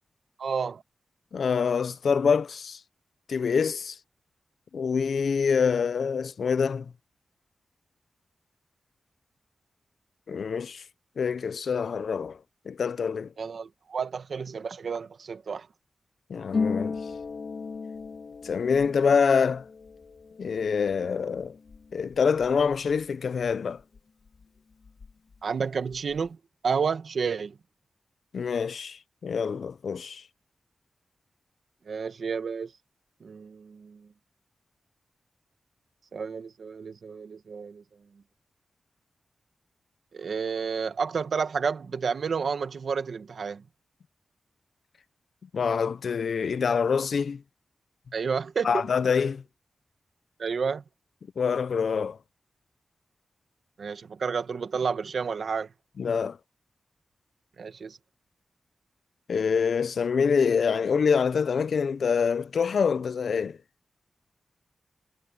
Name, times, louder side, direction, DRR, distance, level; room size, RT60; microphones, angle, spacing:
voice 1, 0.4-0.8 13.4-15.7 25.4-26.4 26.6-27.6 31.9-32.7 33.2-34.1 36.1-37.8 40.1-43.6 48.1-48.9 50.4-50.8 53.8-55.7 57.6-58.0, right 5 dB, 70° right, 1.3 m, -30 dB
voice 2, 1.3-2.8 3.3-4.0 4.7-6.9 10.3-10.8 11.2-12.4 12.7-13.3 16.3-17.0 18.4-19.6 20.4-21.6 21.9-23.8 28.3-30.2 45.5-47.4 48.6-49.4 51.4-52.2 56.0-56.4 59.3-63.6, left 6 dB, 75° left, 0.5 m, -25 dB
Harp, 16.5-24.0 24.3-25.4 25.6-26.3, left 4 dB, 60° left, 3.1 m, -36 dB
wide cardioid pair, 145°, 0 cm